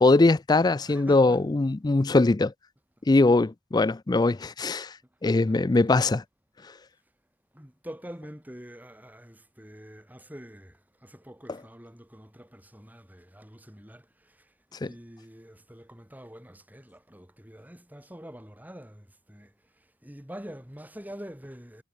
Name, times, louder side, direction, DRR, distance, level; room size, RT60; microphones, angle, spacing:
voice 1, 0.0-2.5 3.1-4.9 5.2-6.2 14.8-14.9, left 2 dB, 20° left, 0.4 m, -21 dB
voice 2, 0.9-1.5 3.2-3.3 5.2-6.1 7.5-21.8, equal, 10° right, 3.6 m, -46 dB
head